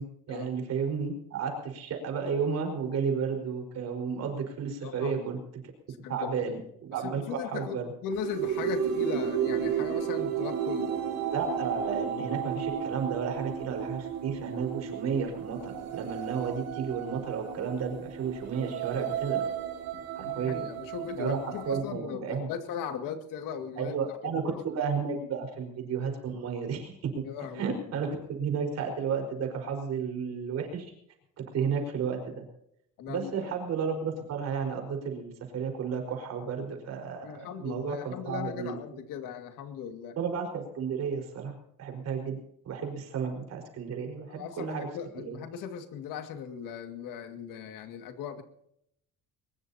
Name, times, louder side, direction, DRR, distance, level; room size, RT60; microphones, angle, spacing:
voice 1, 0.0-5.4 6.1-7.9 11.3-19.4 20.1-20.6 21.2-22.5 23.8-27.1 27.5-30.9 31.5-32.4 33.1-38.8 40.2-41.5 41.8-42.4 42.6-44.9 45.1-45.4, right 6 dB, 45° right, 4 dB, 4.9 m, -32 dB
voice 2, 4.8-5.3 6.0-6.3 7.0-11.0 20.2-24.0 24.2-24.6 27.2-27.8 33.0-33.5 37.2-40.2 44.3-48.4, left 7 dB, 65° left, 7 dB, 2.2 m, -38 dB
sound 1, 8.1-21.8, right 8 dB, 75° right, 4.0 m, -33 dB
22.5 x 20.5 x 2.9 m, 0.73 s
cardioid pair, 160°, 35 cm